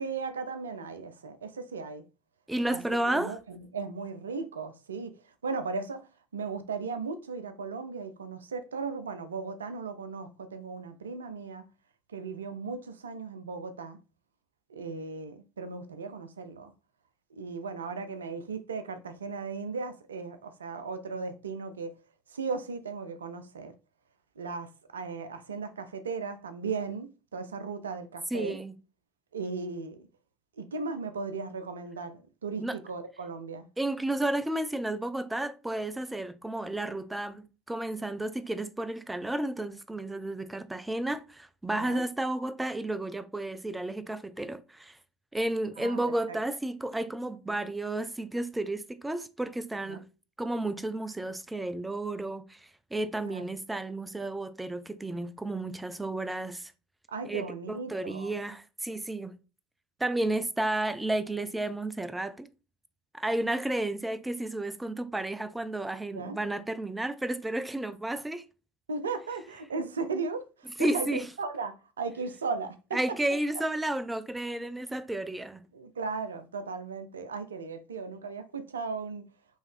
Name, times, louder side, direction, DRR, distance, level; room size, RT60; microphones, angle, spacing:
voice 1, 0.0-2.0 2.7-2.8 3.1-5.1 5.4-6.0 6.3-11.7 12.1-14.0 14.7-16.7 17.3-21.9 22.3-23.7 24.4-28.6 29.3-30.0 30.6-33.7 41.7-42.0 45.8-46.0 46.3-46.4 49.9-50.0 53.2-53.5 57.1-58.3 66.1-66.4 68.9-73.0 73.5-73.6 75.7-79.2, right 4 dB, 85° right, 0.5 m, -36 dB
voice 2, 2.5-3.4 28.3-28.7 32.6-32.8 33.8-45.0 45.3-50.0 50.4-56.7 57.2-59.4 60.0-62.5 63.1-68.4 70.8-71.3 72.9-75.7, right 1 dB, 10° right, 0.6 m, -32 dB
5.4 x 3.0 x 3.2 m
hypercardioid pair, 70°, 0 cm